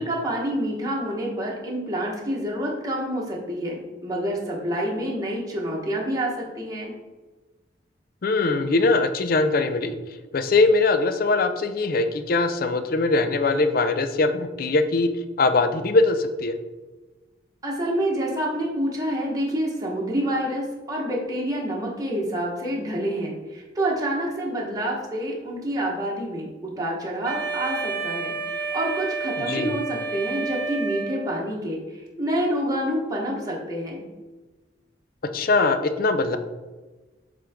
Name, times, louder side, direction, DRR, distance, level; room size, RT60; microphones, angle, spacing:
voice 1, 0.0-6.9 17.6-34.0, right 1 dB, 20° right, -3 dB, 1.1 m, -28 dB
voice 2, 8.2-9.9 10.3-15.1 15.4-16.5 29.5-29.7 35.3-36.4, left 3 dB, 50° left, 9 dB, 0.4 m, -21 dB
Wind instrument woodwind instrument, 27.2-31.4, right 4 dB, 45° right, 1.0 m, -30 dB
7.5 x 3.8 x 3.5 m, 1.2 s
head